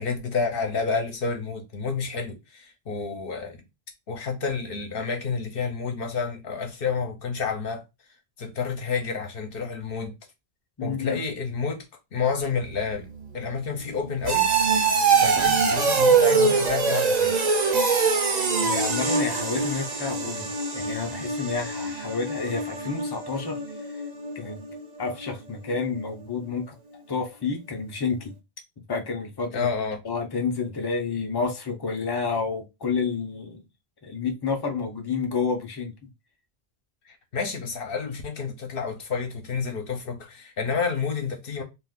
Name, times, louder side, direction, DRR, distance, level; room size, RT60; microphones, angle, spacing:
voice 1, 0.0-3.6 4.1-7.8 8.4-10.1 10.8-11.9 12.1-13.1 13.3-14.5 15.2-17.4 29.5-30.0 37.1-41.6, left 5 dB, 60° left, 0.9 m, -29 dB
voice 2, 10.8-11.2 18.6-23.6 24.4-24.6 25.0-26.8 27.1-28.3 28.9-29.7 30.0-33.6 34.0-35.9, left 5 dB, 30° left, 0.5 m, -29 dB
sound 1, 12.6-25.3 25.6-26.0 26.4-26.5, right 5 dB, 45° right, 0.7 m, -24 dB
2.4 x 2.4 x 3.5 m
omnidirectional pair, 1.1 m